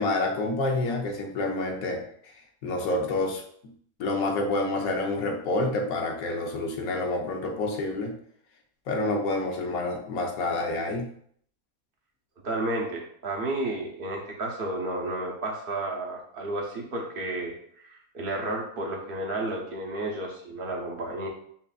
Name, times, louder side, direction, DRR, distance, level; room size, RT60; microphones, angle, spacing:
voice 1, 0.0-2.0 2.6-3.4 4.0-8.1 8.9-11.1, left 2 dB, 80° left, 2 dB, 1.2 m, -28 dB
voice 2, 12.4-17.6 17.8-21.3, right 2 dB, 45° right, -1 dB, 0.9 m, -32 dB
5.6 x 2.6 x 2.3 m, 0.63 s
omnidirectional pair, 1.5 m